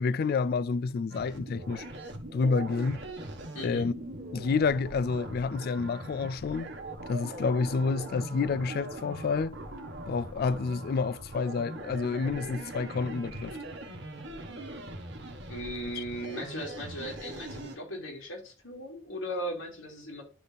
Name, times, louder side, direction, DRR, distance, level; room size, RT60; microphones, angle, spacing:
voice 1, 0.0-1.8 2.3-3.0 3.6-3.9 4.3-6.7 7.1-9.6 10.1-13.6 16.0-16.1, left 4 dB, 50° left, 0.3 m, -29 dB
sound 1, 1.1-17.8, right 1 dB, 60° right, 1.5 m, -41 dB
voice 2, 3.5-3.9 15.5-20.2, equal, 90° left, 2.7 m, -37 dB
11.0 x 4.1 x 3.4 m
head